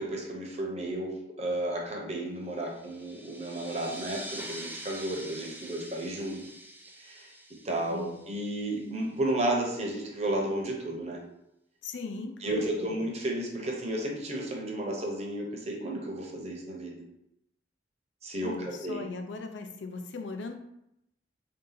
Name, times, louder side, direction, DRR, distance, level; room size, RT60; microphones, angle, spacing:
voice 1, 0.0-6.4 7.0-7.3 7.6-11.2 12.4-17.0 18.2-19.0, right 1 dB, 35° right, 0 dB, 0.8 m, -33 dB
sound 1, 2.6-8.8, right 1 dB, 10° right, 0.3 m, -45 dB
voice 2, 7.9-8.2 11.8-12.9 18.4-20.6, left 3 dB, 75° left, 6 dB, 0.5 m, -39 dB
3.7 x 2.8 x 3.9 m, 0.81 s
head